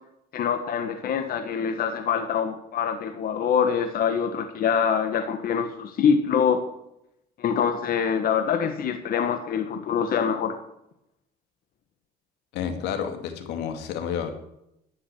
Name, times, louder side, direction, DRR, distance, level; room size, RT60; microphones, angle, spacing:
voice 1, 0.3-6.6 7.4-10.6, left 7 dB, 60° left, 7 dB, 1.8 m, -25 dB
voice 2, 12.5-14.3, left 8 dB, 90° left, 7 dB, 2.5 m, -30 dB
12.0 x 10.0 x 8.6 m, 0.80 s
cardioid pair, 110°, 17 cm